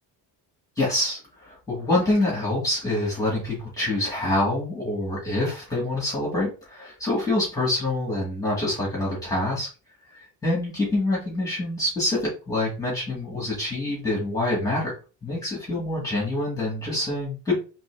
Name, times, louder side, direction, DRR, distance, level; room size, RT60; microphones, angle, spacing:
voice 1, 0.8-9.7 10.1-14.9 15.2-17.5, left 2 dB, 10° left, -5 dB, 2.0 m, -26 dB
4.4 x 3.4 x 3.5 m, 0.34 s
cardioid pair, 155°, 39 cm